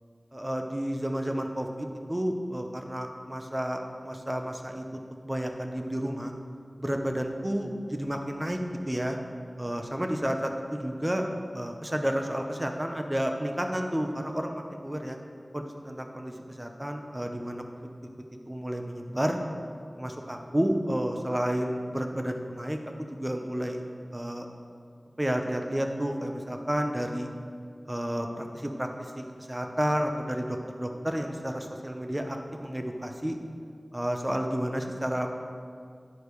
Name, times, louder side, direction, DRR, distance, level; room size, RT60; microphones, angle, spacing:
voice 1, 0.3-6.3 6.8-8.6 8.9-9.2 9.6-11.2 11.5-15.2 15.5-17.6 18.5-19.4 20.0-23.8 24.1-24.5 25.2-27.3 27.9-33.4 33.9-35.3, equal, 20° right, 3 dB, 0.9 m, -31 dB
10.5 x 5.0 x 4.8 m, 2.2 s
wide cardioid pair, 50°, 0 cm